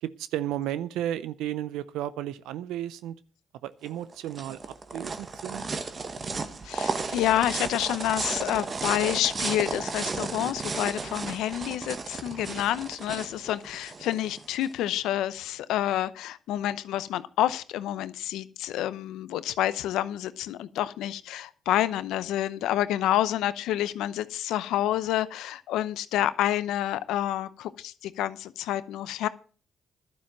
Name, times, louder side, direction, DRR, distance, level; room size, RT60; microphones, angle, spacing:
voice 1, 0.0-3.2 3.6-5.6, right 12 dB, 85° right, 0.5 m, -33 dB
sound 1, 3.9-14.7, right 4 dB, 40° right, 1.4 m, -34 dB
voice 2, 6.6-29.3, left 13 dB, 80° left, 0.7 m, -28 dB
12.0 x 6.9 x 7.4 m
supercardioid pair, 65°, 0 cm